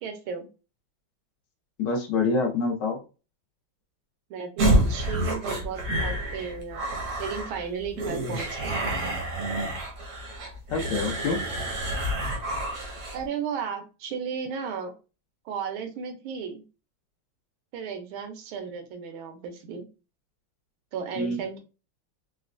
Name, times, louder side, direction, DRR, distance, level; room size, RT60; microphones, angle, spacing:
voice 1, 0.0-0.5 4.3-8.8 13.1-14.9 15.4-16.6 17.7-19.9 20.9-21.6, right 6 dB, 80° right, 6 dB, 1.5 m, -34 dB
voice 2, 1.8-3.0 10.7-11.4 21.2-21.4, left 3 dB, 70° left, 2 dB, 1.2 m, -26 dB
sound 1, 4.6-13.2, right 1 dB, 55° right, 0.9 m, -28 dB
3.9 x 2.1 x 2.5 m, 0.32 s
omnidirectional pair, 2.2 m